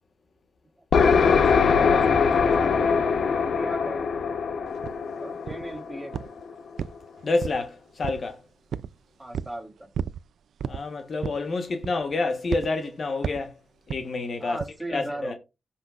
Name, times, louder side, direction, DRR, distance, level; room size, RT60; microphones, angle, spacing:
sound 1, 0.9-6.5, left 5 dB, 75° left, 0.9 m, -22 dB
voice 1, 1.0-4.1 5.2-6.3 9.2-9.9 14.4-15.4, right 1 dB, 10° right, 3.2 m, -37 dB
sound 2, 4.8-5.0 5.5-5.8 6.1-6.4 6.8-7.7 8.0-8.3 8.7-8.9 9.3-9.6 9.9-10.2 10.6-10.8 11.2-11.5 11.8-12.1 12.5-12.7 13.2-13.5 13.9-14.1 14.6-14.8, right 7 dB, 85° right, 0.4 m, -32 dB
voice 2, 7.2-8.4 10.7-13.6 13.9-14.6 14.9-15.3, left 3 dB, 50° left, 1.3 m, -28 dB
16.0 x 5.7 x 2.5 m
wide cardioid pair, 115°, 0 cm